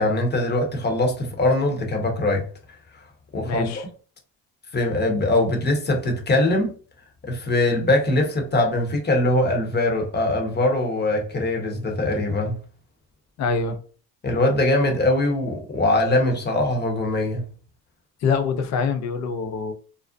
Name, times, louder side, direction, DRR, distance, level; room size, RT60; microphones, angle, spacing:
voice 1, 0.0-2.5 3.3-3.7 4.7-6.7 7.2-12.6 14.2-17.4, left 2 dB, 25° left, 0.8 m, -22 dB
voice 2, 3.5-3.8 13.4-13.8 18.2-19.7, left 5 dB, 40° left, 0.5 m, -24 dB
2.5 x 2.0 x 2.5 m
supercardioid pair, 80°, 42 cm